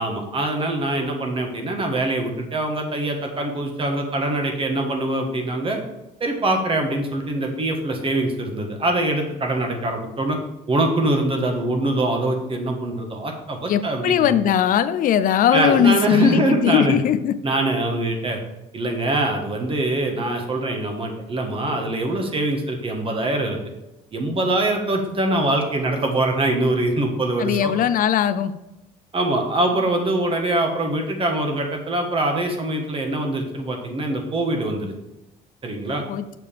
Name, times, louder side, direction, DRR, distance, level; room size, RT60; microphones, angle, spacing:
voice 1, 0.0-5.8 6.2-10.4 10.7-14.4 15.5-17.0 17.4-18.4 18.7-23.6 24.1-27.7 29.1-34.9 35.6-36.0, right 2 dB, 30° right, 3 dB, 1.5 m, -23 dB
voice 2, 13.7-17.3 27.4-28.5 36.1-36.3, left 9 dB, 55° left, 13 dB, 0.5 m, -19 dB
6.8 x 6.6 x 3.5 m, 0.97 s
cardioid pair, 110°, 17 cm